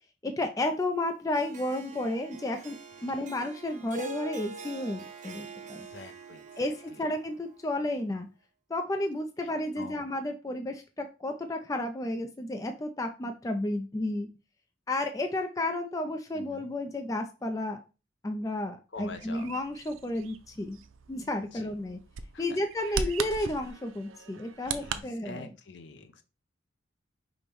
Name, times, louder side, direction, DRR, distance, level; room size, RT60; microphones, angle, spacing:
voice 1, 0.2-2.8 3.0-5.9 6.6-8.3 8.7-14.3 14.9-17.8 18.2-20.8 21.1-22.0 22.4-25.5, left 1 dB, 15° left, 5 dB, 0.3 m, -32 dB
Harp, 1.4-7.7, right 3 dB, 40° right, 0.7 m, -44 dB
voice 2, 5.6-7.1 9.4-9.5 9.8-10.1 16.3-16.7 18.9-19.5 21.5-21.7 22.3-22.4 22.8-23.1 24.6-26.2, left 3 dB, 60° left, 8 dB, 0.6 m, -46 dB
Bird vocalization bird call bird song, 19.0-25.0, right 5 dB, 85° right, 0.5 m, -39 dB
5.2 x 2.1 x 4.5 m, 0.31 s
head